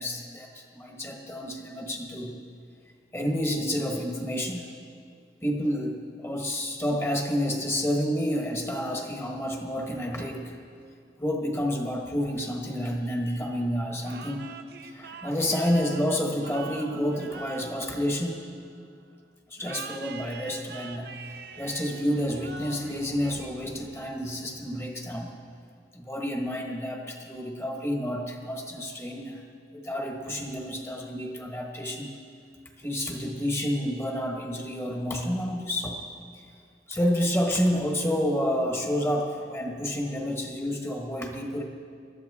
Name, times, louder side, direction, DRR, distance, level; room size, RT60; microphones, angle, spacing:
voice 1, 0.0-2.4 3.1-4.7 5.4-10.5 11.2-14.5 14.8-18.5 19.5-21.1 21.6-25.3 25.9-29.4 29.7-32.2 32.8-36.0 36.9-41.6, equal, 15° left, 2 dB, 1.3 m, -29 dB
sound 1, 14.0-18.8 19.6-24.0, right 5 dB, 60° right, 0.7 m, -44 dB
21.0 x 13.5 x 3.6 m, 2.2 s
head